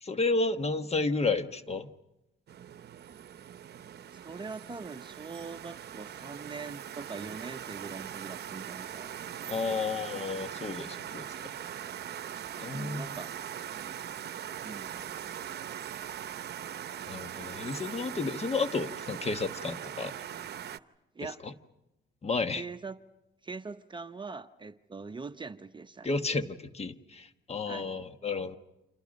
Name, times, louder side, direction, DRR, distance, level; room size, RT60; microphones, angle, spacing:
voice 1, 0.0-1.9 9.5-11.3 12.6-13.1 17.1-20.1 21.4-21.5 22.2-22.6 26.0-28.6, left 3 dB, 30° left, 1.4 m, -32 dB
sound 1, 2.5-20.8, right 9 dB, 55° right, 0.9 m, -41 dB
voice 2, 4.1-9.1 9.7-9.8 12.7-13.3 14.6-14.9 21.1-21.4 22.5-23.0 23.4-26.1 27.7-27.9, right 4 dB, 25° right, 0.8 m, -42 dB
29.0 x 26.5 x 5.3 m
cardioid pair, 90°, 20 cm